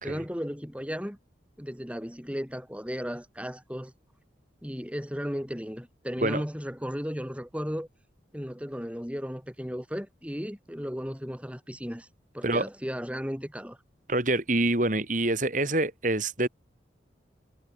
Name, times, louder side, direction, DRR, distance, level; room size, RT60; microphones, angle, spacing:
voice 1, 0.0-1.2 1.6-3.9 4.6-7.9 8.3-12.1 12.3-13.8, equal, 5° right, 7.8 m, -35 dB
voice 2, 14.1-16.5, right 2 dB, 45° right, 4.0 m, -26 dB
head